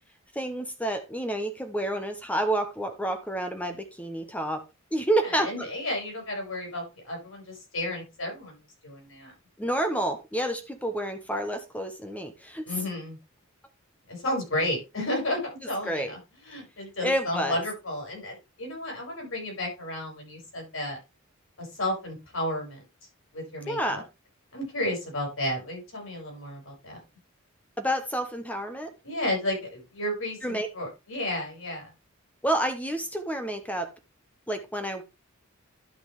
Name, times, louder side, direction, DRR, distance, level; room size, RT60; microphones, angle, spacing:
voice 1, 0.3-4.6 4.9-5.7 9.6-12.6 15.8-16.1 17.0-17.6 23.7-24.0 27.8-28.9 30.4-30.7 32.4-33.9 34.5-35.0, right 1 dB, 5° left, 7 dB, 1.0 m, -29 dB
voice 2, 5.2-8.5 8.8-9.3 12.7-13.2 14.1-16.2 16.4-21.0 21.6-22.8 23.3-24.0 24.5-27.0 29.0-31.9, left 1 dB, 75° left, 0 dB, 6.7 m, -32 dB
11.5 x 5.9 x 3.5 m, 0.26 s
head